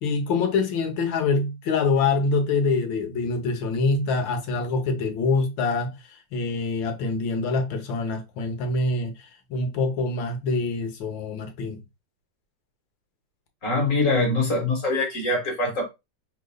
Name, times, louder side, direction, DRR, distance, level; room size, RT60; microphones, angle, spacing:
voice 1, 0.0-5.9 6.3-9.1 9.5-11.8, left 3 dB, 85° left, 1.7 m, -25 dB
voice 2, 13.6-15.9, left 2 dB, 45° left, 1.8 m, -23 dB
5.0 x 3.6 x 2.3 m
omnidirectional pair, 2.0 m